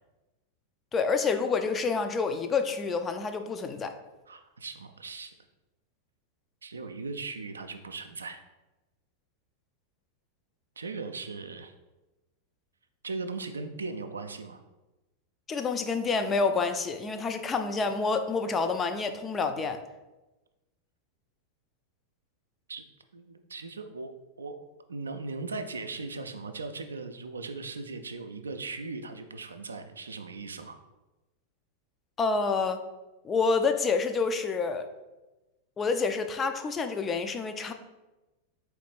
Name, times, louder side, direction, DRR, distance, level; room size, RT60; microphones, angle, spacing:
voice 1, 0.9-3.9 15.5-19.8 32.2-32.8 33.2-34.9 35.8-37.7, left 4 dB, 20° left, 7 dB, 0.3 m, -28 dB
voice 2, 4.3-5.3 6.6-8.4 10.8-11.7 13.0-14.6 22.7-22.8 23.1-24.1 24.4-24.6 24.9-30.8, right 3 dB, 75° right, 7 dB, 0.3 m, -38 dB
4.1 x 3.1 x 3.2 m, 1.1 s
figure-of-eight pair, 90°, 0 cm